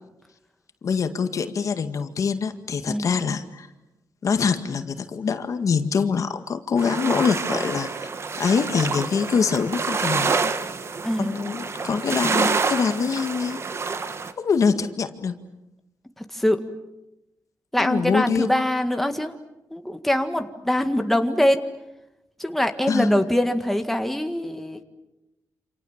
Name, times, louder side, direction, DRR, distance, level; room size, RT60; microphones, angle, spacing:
voice 1, 0.8-3.7 4.2-7.9 8.4-10.5 11.2-13.6 14.4-15.3 17.8-18.5 22.9-23.1, left 6 dB, 55° left, 8 dB, 2.0 m, -24 dB
sound 1, 6.8-14.3, right 4 dB, 45° right, 1.7 m, -27 dB
voice 2, 17.7-19.3 19.7-21.6 22.4-24.8, left 1 dB, 5° left, 6 dB, 1.8 m, -23 dB
28.0 x 28.0 x 7.4 m, 0.94 s
cardioid pair, 110°, 6 cm